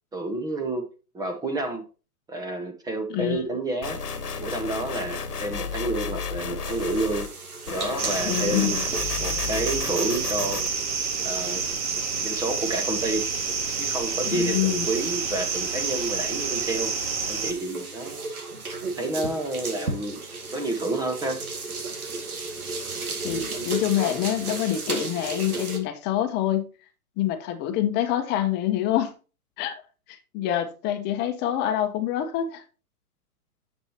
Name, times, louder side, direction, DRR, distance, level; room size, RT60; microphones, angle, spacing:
voice 1, 0.1-0.9 1.1-1.9 2.3-4.0 4.4-7.3 7.7-8.8 9.2-10.6 11.2-11.6 12.2-13.3 13.8-16.9 17.3-18.2 18.8-20.2 20.5-21.4, right 2 dB, 10° right, 1.0 m, -29 dB
voice 2, 3.1-3.4 8.2-8.8 14.3-14.9 23.2-26.7 27.2-29.1 29.6-29.7 30.1-32.6, left 11 dB, 20° left, 1.1 m, -26 dB
sound 1, 3.8-7.3 7.7-10.7, left 6 dB, 80° left, 1.4 m, -33 dB
sound 2, 6.6-25.8, right 3 dB, 70° right, 2.4 m, -36 dB
sound 3, 8.0-17.5, right 5 dB, 50° right, 2.0 m, -29 dB
9.9 x 7.4 x 2.9 m
figure-of-eight pair, 125°, 46 cm